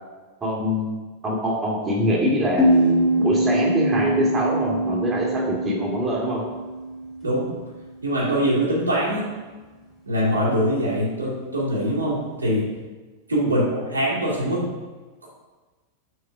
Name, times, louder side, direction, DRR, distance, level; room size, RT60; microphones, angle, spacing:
voice 1, 0.4-0.9 1.2-6.4 13.4-13.6, equal, 20° right, -3 dB, 1.9 m, -24 dB
sound 1, 2.6-7.9, right 1 dB, 25° left, 2.4 m, -24 dB
voice 2, 8.0-9.3 10.0-12.7 13.3-14.6, equal, 80° right, -6 dB, 2.5 m, -23 dB
6.2 x 4.6 x 5.8 m, 1.3 s
figure-of-eight pair, 90°, 0 cm